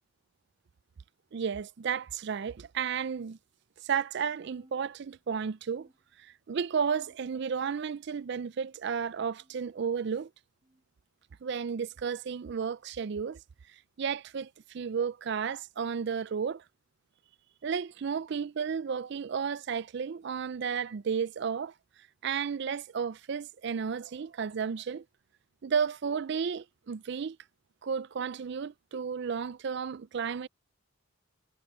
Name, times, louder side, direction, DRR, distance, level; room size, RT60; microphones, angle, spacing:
voice 1, 1.3-3.4 3.8-5.9 6.2-10.3 11.4-13.4 14.0-16.6 17.6-21.7 22.2-25.0 25.6-27.4 27.8-30.5, right 6 dB, 55° right, 0.4 m, -33 dB
sound 1, 4.5-5.4 5.7-6.5 7.0-7.6 8.2-8.8 9.4-9.8 10.6-10.9 11.8-12.1 13.1-13.3 14.3-14.5 15.5-15.7 16.7-16.9 17.9-18.0 19.2-19.3, right 1 dB, 20° right, 2.7 m, -66 dB
head